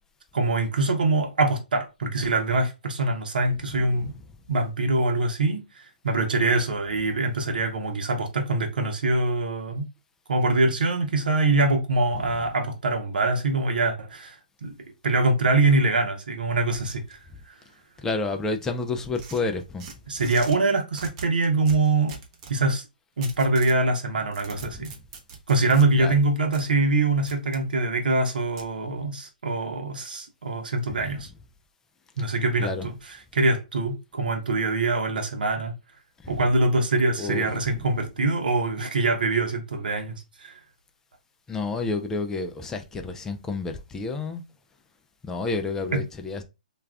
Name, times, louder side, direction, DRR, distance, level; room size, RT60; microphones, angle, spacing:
voice 1, 0.3-4.1 4.5-9.9 10.3-14.8 15.0-17.2 17.5-17.6 20.1-22.2 22.5-22.8 23.2-24.9 25.5-31.3 32.2-33.0 33.3-35.7 36.3-40.6 45.9-46.0, right 2 dB, 70° right, 0.8 m, -24 dB
voice 2, 18.0-19.9 24.5-24.8 26.0-26.1 30.9-31.1 32.6-32.9 36.2-36.4 37.2-37.8 41.5-44.4 45.2-46.4, left 3 dB, 10° left, 0.4 m, -30 dB
sound 1, 19.1-20.6 20.9-22.6 23.2-23.8 24.2-25.8 26.5-26.6 27.3-27.6 28.6-28.7, right 5 dB, 35° right, 0.7 m, -42 dB
2.3 x 2.3 x 3.3 m
hypercardioid pair, 135°, 5 cm